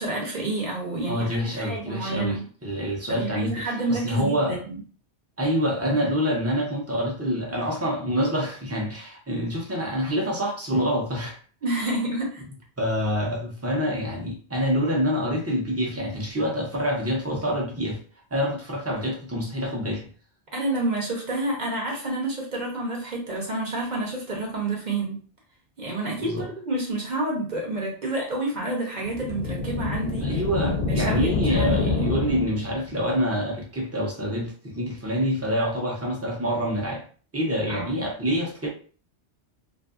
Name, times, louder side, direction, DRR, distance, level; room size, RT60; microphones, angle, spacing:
voice 1, 0.0-2.4 3.1-4.8 11.6-12.4 20.5-25.2 25.8-30.4 30.9-32.1 37.7-38.0, right 2 dB, 45° right, 0.8 m, -29 dB
voice 2, 1.1-4.6 5.4-11.4 12.8-18.0 18.3-20.1 26.2-26.5 30.2-37.0 37.3-38.7, equal, 20° right, 0.5 m, -26 dB
sound 1, 29.1-32.9, left 4 dB, 60° left, 0.7 m, -26 dB
2.6 x 2.6 x 2.4 m
omnidirectional pair, 1.2 m